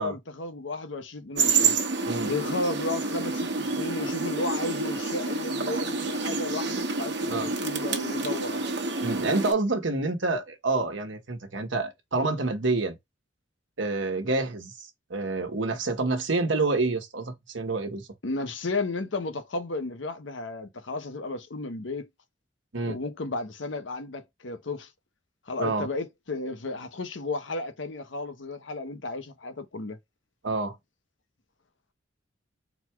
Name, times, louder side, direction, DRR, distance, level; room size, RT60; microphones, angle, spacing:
voice 1, 0.0-1.7 2.2-8.6 18.2-22.1 22.8-24.9 25.5-30.0, left 2 dB, 80° left, 0.9 m, -33 dB
sound 1, 1.4-9.5, right 4 dB, 65° right, 1.0 m, -28 dB
voice 2, 9.0-12.9 13.8-14.7 15.1-18.1 22.7-23.0 25.6-25.9 30.4-30.7, right 3 dB, 80° right, 1.1 m, -28 dB
4.1 x 2.3 x 4.4 m
head